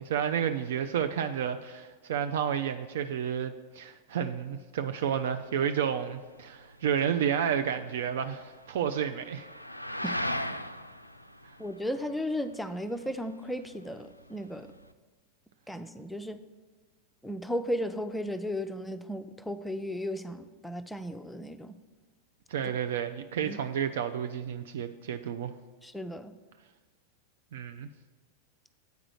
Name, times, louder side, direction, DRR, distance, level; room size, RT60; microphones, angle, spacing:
voice 1, 0.0-9.5 22.5-25.5 27.5-27.9, right 8 dB, 55° right, 9 dB, 0.3 m, -31 dB
sound 1, 5.0-14.9, left 1 dB, 90° left, 0.3 m, -40 dB
voice 2, 11.6-14.7 15.7-16.4 17.2-21.8 22.6-22.7 23.5-23.6 25.8-26.3, equal, 5° left, 9 dB, 0.5 m, -35 dB
8.1 x 4.9 x 6.3 m, 1.4 s
figure-of-eight pair, 90°, 0 cm